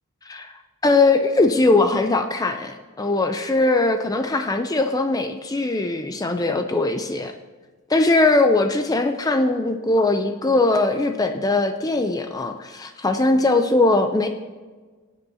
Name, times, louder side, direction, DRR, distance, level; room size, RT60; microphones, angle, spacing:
voice 1, 0.8-7.3 7.9-14.3, left 2 dB, 15° left, 7 dB, 0.4 m, -20 dB
18.5 x 8.1 x 2.7 m, 1.4 s
head